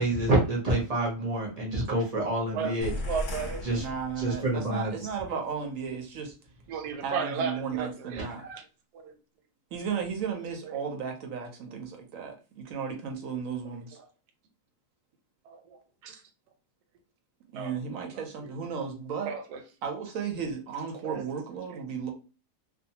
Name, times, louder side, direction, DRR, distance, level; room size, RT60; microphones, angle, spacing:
voice 1, 0.0-2.9 3.6-3.9 4.2-4.9 8.4-8.6, right 1 dB, 45° right, 0.5 m, -27 dB
voice 2, 2.5-3.7 6.7-8.2 8.9-9.1 15.5-16.2 17.5-18.1 19.2-19.6 21.0-21.2 21.7-21.8, right 6 dB, 90° right, 1.2 m, -35 dB
sound 1, 2.8-4.7, left 1 dB, 60° left, 0.9 m, -36 dB
voice 3, 3.7-6.3 7.0-8.4 9.7-14.0 17.5-19.3 19.8-22.1, right 6 dB, 70° right, 0.8 m, -34 dB
2.6 x 2.2 x 2.7 m
omnidirectional pair, 1.7 m